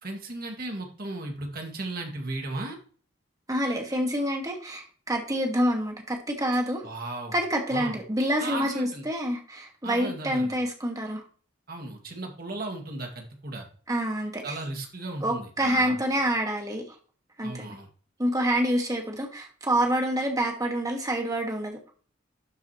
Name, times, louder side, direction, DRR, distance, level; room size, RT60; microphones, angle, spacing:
voice 1, 0.0-2.8 6.8-7.4 7.7-8.0 8.4-9.0 9.8-10.5 11.7-13.7 14.4-16.0 17.4-17.9, right 2 dB, 50° right, 2 dB, 1.9 m, -35 dB
voice 2, 3.5-6.8 7.3-11.2 13.9-14.6 15.2-16.9 17.4-17.8 18.2-21.8, equal, 20° right, 2 dB, 1.5 m, -27 dB
11.5 x 4.8 x 2.9 m, 0.41 s
head